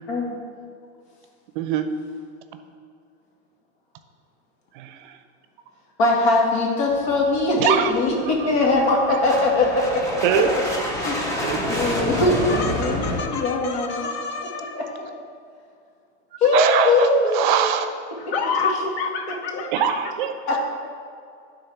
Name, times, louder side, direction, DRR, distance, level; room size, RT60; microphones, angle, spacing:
voice 1, 1.6-1.9 4.7-5.2 7.6-7.9 8.4-8.5 10.2-10.5 11.4-11.6 16.5-17.9 19.7-20.6, right 9 dB, 45° right, 9 dB, 0.6 m, -23 dB
voice 2, 6.0-10.0 10.9-11.4 11.7-14.1 14.4-14.5 14.8-14.9 16.4-17.5 19.5-19.6 20.5-20.6, left 2 dB, 65° left, -1 dB, 2.1 m, -21 dB
sound 1, 6.9-13.2, left 1 dB, 10° left, 0.5 m, -28 dB
voice 3, 12.5-14.8 18.2-20.0, left 5 dB, 40° left, 6 dB, 0.8 m, -29 dB
9.7 x 4.0 x 6.0 m, 2.3 s
supercardioid pair, 175°, 35 cm